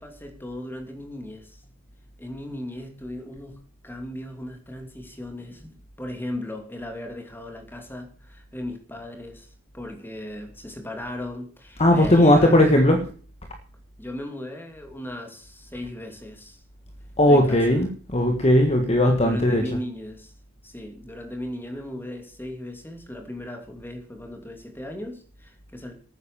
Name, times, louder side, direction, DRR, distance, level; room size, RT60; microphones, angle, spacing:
voice 1, 0.0-1.6 2.2-12.7 14.0-16.6 17.3-17.6 19.1-20.3 20.6-25.9, left 1 dB, 10° left, 4 dB, 2.7 m, -37 dB
voice 2, 11.8-13.0 17.2-19.6, left 1 dB, 30° left, 4 dB, 1.5 m, -18 dB
12.5 x 9.6 x 6.8 m, 0.42 s
head